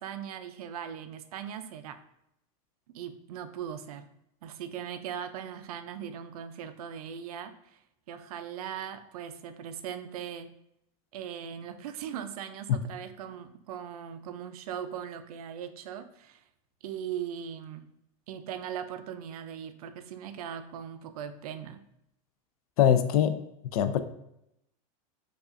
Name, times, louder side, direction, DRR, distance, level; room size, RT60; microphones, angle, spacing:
voice 1, 0.0-2.0 2.9-4.1 4.4-7.8 8.1-10.5 11.1-16.4 16.8-17.8 18.3-21.8, right 9 dB, 90° right, 10 dB, 0.4 m, -39 dB
voice 2, 22.8-23.3 23.7-24.0, left 9 dB, 80° left, 10 dB, 0.4 m, -22 dB
4.7 x 2.4 x 2.5 m, 0.80 s
supercardioid pair, 135°, 19 cm